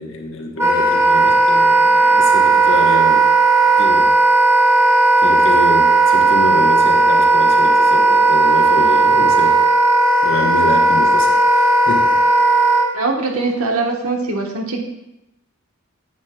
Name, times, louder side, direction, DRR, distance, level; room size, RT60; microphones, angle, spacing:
voice 1, 0.0-3.2 3.7-4.1 5.2-9.6 10.2-12.0, left 1 dB, 60° left, 2 dB, 1.1 m, -26 dB
Wind instrument woodwind instrument, 0.6-12.9, right 3 dB, 10° right, 1.1 m, -14 dB
voice 2, 12.9-14.8, right 3 dB, 85° right, 1 dB, 1.2 m, -21 dB
9.5 x 8.3 x 2.3 m, 0.91 s
head